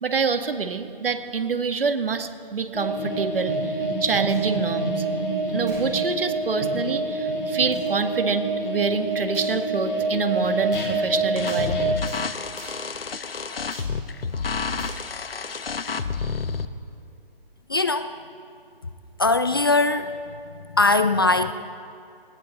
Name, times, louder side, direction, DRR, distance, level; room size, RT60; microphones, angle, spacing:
voice 1, 0.0-5.1 5.5-11.9, right 5 dB, 70° right, 7 dB, 1.8 m, -26 dB
sound 1, 2.7-11.9, right 2 dB, 55° left, 4.0 m, -26 dB
sound 2, 4.3-4.5 5.6-5.9 6.5-6.6 7.7-7.9 9.3-9.6 10.7-10.9 11.5-11.6 12.1-12.2 12.6-12.9 13.7-13.9 14.8-15.0, right 3 dB, 15° right, 4.6 m, -45 dB
sound 3, 11.4-16.7, left 5 dB, 75° left, 1.1 m, -30 dB
voice 2, 17.7-18.1 19.2-20.1 20.7-21.5, left 3 dB, 25° left, 11 dB, 0.4 m, -20 dB
19.5 x 18.0 x 4.2 m, 2.4 s
figure-of-eight pair, 145°, 29 cm